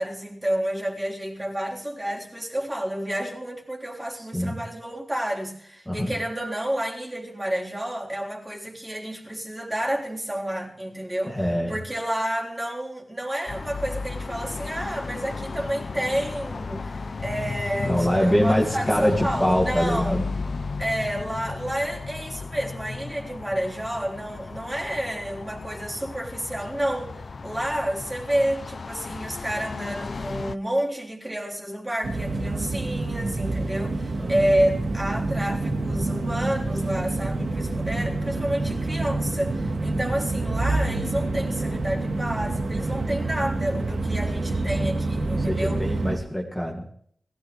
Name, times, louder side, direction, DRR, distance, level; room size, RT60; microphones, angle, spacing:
voice 1, 0.0-20.2 20.8-45.8, right 1 dB, 15° right, -2 dB, 3.6 m, -30 dB
voice 2, 11.3-11.8 17.8-20.2 20.6-20.7 34.2-34.3 45.4-46.8, equal, 5° left, -2 dB, 2.0 m, -24 dB
sound 1, 13.5-30.6, left 4 dB, 55° left, 0.5 m, -34 dB
sound 2, 32.0-46.2, right 2 dB, 85° right, 2.8 m, -27 dB
21.0 x 17.0 x 3.2 m, 0.62 s
wide cardioid pair, 120°, 0 cm